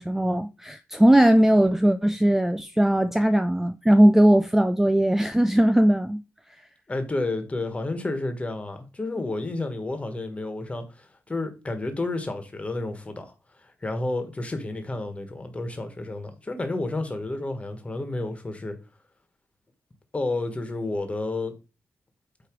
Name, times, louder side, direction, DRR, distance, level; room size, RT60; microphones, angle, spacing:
voice 1, 0.0-6.2, right 1 dB, 5° right, 0.4 m, -19 dB
voice 2, 6.9-13.3 13.6-18.8 20.1-21.5, left 2 dB, 25° left, 1.5 m, -31 dB
8.5 x 3.2 x 4.6 m
cardioid pair, 105°, 5 cm